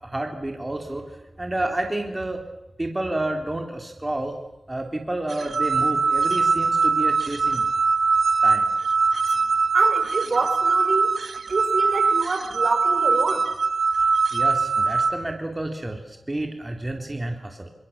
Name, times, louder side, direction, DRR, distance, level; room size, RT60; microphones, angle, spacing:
voice 1, 0.0-2.4 2.8-4.4 4.7-7.6 8.4-8.7 14.3-17.7, right 1 dB, 20° right, 3 dB, 3.3 m, -30 dB
sound 1, 5.3-15.1, right 4 dB, 75° right, 1.7 m, -22 dB
voice 2, 9.7-11.1 11.5-13.5, right 3 dB, 60° right, 6 dB, 5.6 m, -27 dB
28.0 x 27.5 x 7.3 m, 0.88 s
wide cardioid pair, 95°, 0 cm